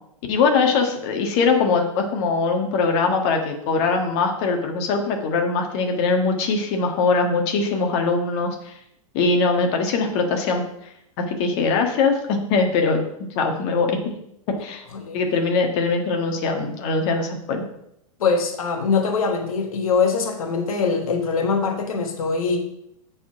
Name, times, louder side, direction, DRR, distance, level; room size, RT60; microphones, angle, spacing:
voice 1, 0.3-8.8 9.1-10.6 11.3-13.0 13.3-14.0 14.5-14.8 15.1-17.6, left 4 dB, 50° left, 4 dB, 1.5 m, -21 dB
voice 2, 18.2-22.6, left 5 dB, 80° left, 4 dB, 1.5 m, -22 dB
7.3 x 4.3 x 5.8 m, 0.77 s
hypercardioid pair, 125°, 18 cm